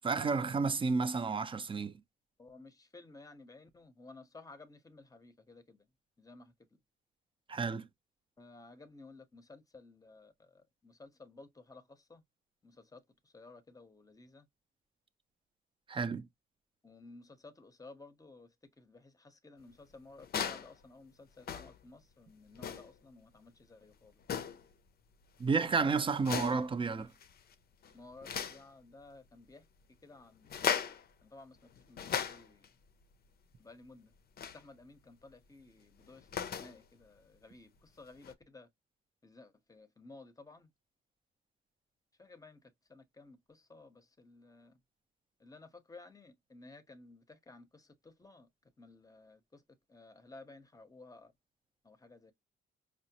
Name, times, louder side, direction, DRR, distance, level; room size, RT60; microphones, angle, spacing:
voice 1, 0.0-1.9 7.5-7.9 15.9-16.3 25.4-27.1, right 4 dB, 25° right, 0.5 m, -31 dB
voice 2, 2.4-5.8 6.2-6.4 8.4-10.3 11.0-11.8 12.1-12.2 12.9-13.0 13.3-14.4 16.8-18.5 18.9-19.0 19.4-24.1 27.9-29.6 30.0-30.5 31.3-31.5 31.9-32.6 33.6-34.1 34.5-36.2 36.6-37.1 37.4-37.7 38.0-38.7 39.2-40.7 42.3-42.6 42.9-43.4 43.7-44.7 45.4-47.7 48.2-48.5 48.8-49.4 49.9-51.3 51.9-52.3, left 3 dB, 15° left, 0.7 m, -55 dB
sound 1, 20.2-20.7 21.4-21.8 22.5-23.0 24.2-24.7 26.2-26.7 27.2-27.5 27.8-28.6 30.4-31.1 31.7-32.7 34.4-34.6 36.0-36.8 38.2-38.3, left 7 dB, 50° left, 0.5 m, -37 dB
4.9 x 2.0 x 2.8 m
cardioid pair, 90°, 20 cm